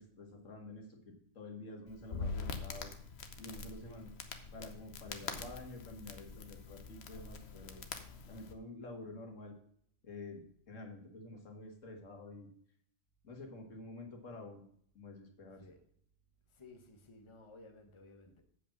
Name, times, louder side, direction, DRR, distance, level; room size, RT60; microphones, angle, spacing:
voice 1, 0.0-2.9 3.4-4.1 4.5-7.8 8.3-9.6 10.0-12.5 13.2-14.7 14.9-15.7, left 2 dB, 80° left, 2.0 m, -49 dB
Crackle, 1.9-8.5, left 4 dB, 60° left, 1.1 m, -44 dB
voice 2, 16.5-18.4, left 2 dB, 25° left, 1.1 m, -56 dB
8.1 x 5.1 x 7.1 m
omnidirectional pair, 1.3 m